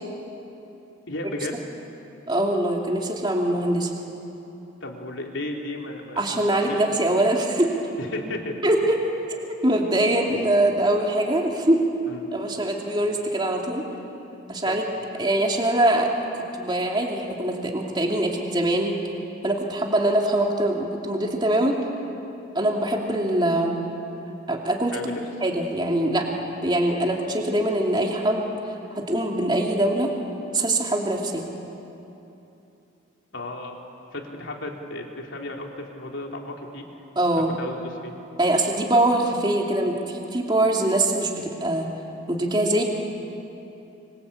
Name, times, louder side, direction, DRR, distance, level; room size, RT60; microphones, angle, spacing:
voice 1, 1.1-1.6 4.8-6.4 6.7-7.0 8.0-8.6 12.1-12.3 14.6-14.8 24.9-25.2 33.3-33.8 34.1-36.8 37.6-38.1, left 1 dB, 70° left, 1 dB, 3.3 m, -34 dB
voice 2, 2.3-3.9 6.2-7.7 8.6-11.8 12.3-13.9 14.5-14.8 15.2-16.1 16.5-19.0 19.4-21.8 22.5-23.7 24.5-25.0 25.4-26.3 26.6-28.5 28.9-30.1 30.5-31.4 37.2-37.6 38.4-41.9 42.3-42.8, right 1 dB, 20° right, 0 dB, 2.9 m, -23 dB
26.0 x 26.0 x 8.5 m, 2.9 s
head